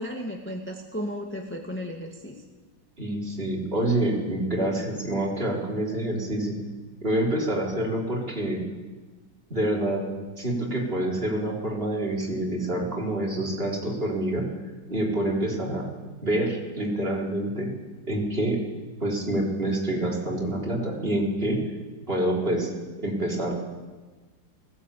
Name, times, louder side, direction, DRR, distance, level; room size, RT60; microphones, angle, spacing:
voice 1, 0.0-2.4, equal, 5° left, 0 dB, 1.6 m, -34 dB
voice 2, 3.0-6.6 7.0-8.6 9.5-10.0 10.4-14.5 14.9-15.8 16.2-17.7 18.1-18.6 19.0-21.6 22.1-22.7 23.0-23.5, right 1 dB, 30° right, -2 dB, 3.9 m, -27 dB
20.0 x 16.0 x 8.5 m, 1.3 s
omnidirectional pair, 2.1 m